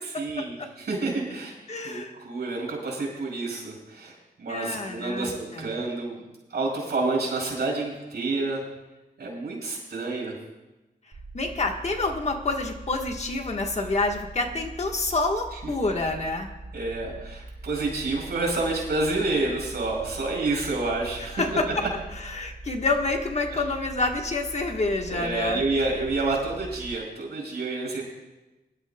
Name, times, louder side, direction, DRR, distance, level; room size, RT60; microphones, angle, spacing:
voice 1, 0.2-1.6 1.8-6.2 6.5-8.7 9.2-10.4 15.5-15.6 16.7-21.6 25.1-28.0, right 3 dB, 85° right, -1 dB, 5.1 m, -29 dB
voice 2, 1.7-2.1 4.5-5.8 11.3-16.5 21.3-21.7 22.2-25.6, left 3 dB, 40° left, 3 dB, 1.4 m, -28 dB
sound 1, 11.1-27.0, right 2 dB, 60° right, 5.1 m, -42 dB
23.5 x 12.0 x 2.3 m, 1.1 s
wide cardioid pair, 110°, 17 cm